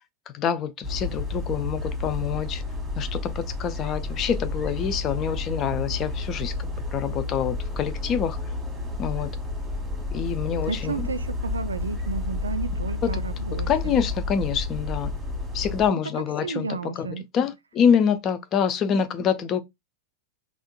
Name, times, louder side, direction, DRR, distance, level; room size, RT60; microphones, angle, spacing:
voice 1, 0.3-2.6 3.0-6.5 6.9-8.4 9.0-9.3 10.1-11.1 13.0-13.2 13.7-15.1 15.5-19.6, left 7 dB, 30° left, 0.4 m, -26 dB
sound 1, 0.8-15.9, left 2 dB, 10° right, 1.4 m, -31 dB
voice 2, 10.7-13.7 16.4-17.2, right 4 dB, 75° right, 0.4 m, -32 dB
3.6 x 2.4 x 2.2 m
figure-of-eight pair, 90°, 0 cm